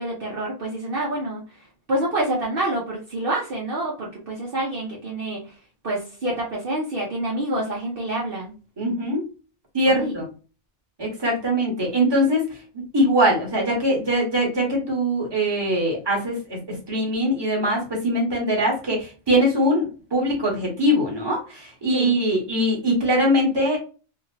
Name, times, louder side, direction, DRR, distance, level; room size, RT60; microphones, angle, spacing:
voice 1, 0.0-1.6 1.9-5.6 5.8-8.5 9.9-10.1 21.9-22.1, right 1 dB, 50° right, -3 dB, 1.0 m, -27 dB
voice 2, 8.8-9.2 9.7-10.3 11.0-12.4 12.7-23.8, equal, 20° right, -2 dB, 1.2 m, -22 dB
2.8 x 2.8 x 2.4 m, 0.35 s
omnidirectional pair, 1.2 m